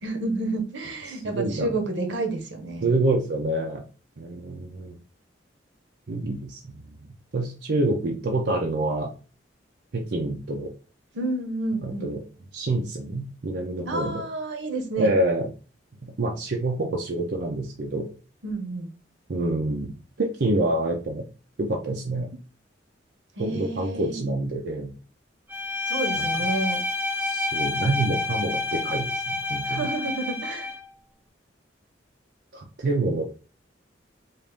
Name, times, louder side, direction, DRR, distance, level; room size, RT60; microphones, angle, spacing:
voice 1, 0.0-3.0 11.1-12.1 13.8-15.1 18.4-18.9 23.4-24.2 25.9-26.8 29.6-30.7, right 2 dB, 85° right, 5 dB, 1.0 m, -30 dB
voice 2, 1.1-1.8 2.8-3.8 4.2-5.0 6.1-6.9 7.3-9.1 9.9-10.7 11.8-12.2 12.5-14.2 15.0-15.5 16.2-18.1 19.3-21.3 21.6-22.3 23.4-24.9 26.2-26.5 27.2-29.9 32.5-33.3, right 2 dB, 60° right, 0 dB, 0.6 m, -27 dB
Bowed string instrument, 25.5-30.9, left 3 dB, 10° right, 0.6 m, -28 dB
4.0 x 2.5 x 3.4 m, 0.34 s
head